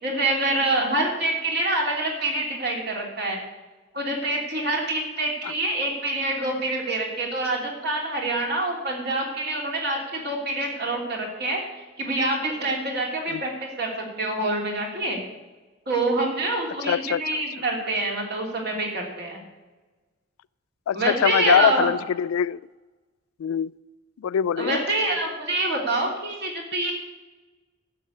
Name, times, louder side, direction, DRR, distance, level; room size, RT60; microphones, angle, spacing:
voice 1, 0.0-3.4 3.9-11.6 12.0-15.2 15.9-19.4 20.9-21.9 24.6-26.9, right 2 dB, 50° right, 0 dB, 3.0 m, -26 dB
voice 2, 16.8-17.4 20.9-22.6 23.4-23.7 24.2-24.8, left 8 dB, 85° left, 21 dB, 0.3 m, -23 dB
12.0 x 6.7 x 8.6 m, 1.2 s
head